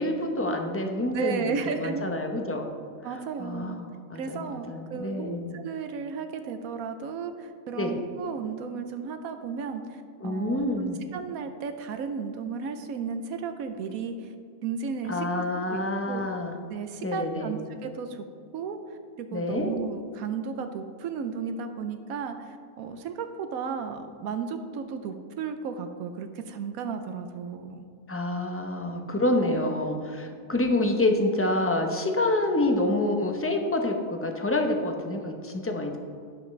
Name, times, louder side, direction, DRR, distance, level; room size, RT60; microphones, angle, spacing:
voice 1, 0.0-2.7 3.4-5.6 7.8-7.9 10.2-11.0 15.0-16.5 17.0-17.5 19.3-19.7 28.1-36.0, left 1 dB, 15° left, 3 dB, 0.6 m, -27 dB
voice 2, 1.1-2.1 3.0-3.8 4.1-14.3 14.6-15.4 15.7-15.8 16.1-16.3 16.7-18.3 18.5-27.9, right 5 dB, 85° right, 7 dB, 1.1 m, -34 dB
17.0 x 5.7 x 3.2 m, 2.3 s
omnidirectional pair, 1.4 m